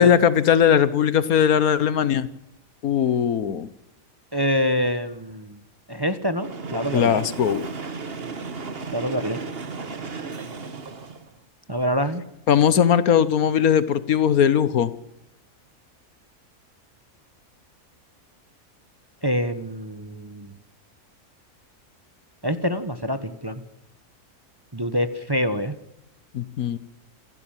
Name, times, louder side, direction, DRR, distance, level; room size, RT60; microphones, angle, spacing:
voice 1, 0.0-2.3 2.8-3.7 6.9-7.7 12.5-14.9 26.3-26.8, left 8 dB, 75° left, 16 dB, 1.5 m, -19 dB
voice 2, 4.3-5.6 5.9-7.2 8.9-9.4 11.7-12.2 19.2-20.5 22.4-23.6 24.7-25.7, equal, 20° right, 11 dB, 1.1 m, -26 dB
Train, 6.3-11.4, right 4 dB, 45° right, 1.6 m, -34 dB
27.5 x 12.5 x 9.0 m, 0.84 s
omnidirectional pair, 1.6 m